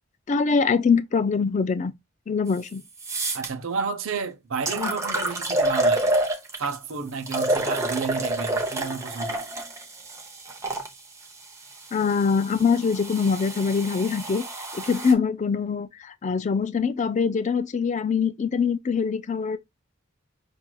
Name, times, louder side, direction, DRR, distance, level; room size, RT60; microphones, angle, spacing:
voice 1, 0.3-1.9 2.3-2.8 4.8-5.0 11.9-14.4 14.7-19.6, left 5 dB, 35° left, 0.3 m, -23 dB
sound 1, 2.5-2.6 3.0-3.5 4.2-4.3 4.7-6.7 7.3-10.9 11.7-15.1, right 1 dB, 15° right, 0.7 m, -28 dB
voice 2, 3.3-6.2 6.6-9.4, right 5 dB, 70° right, 0.7 m, -31 dB
5.9 x 2.5 x 2.3 m
head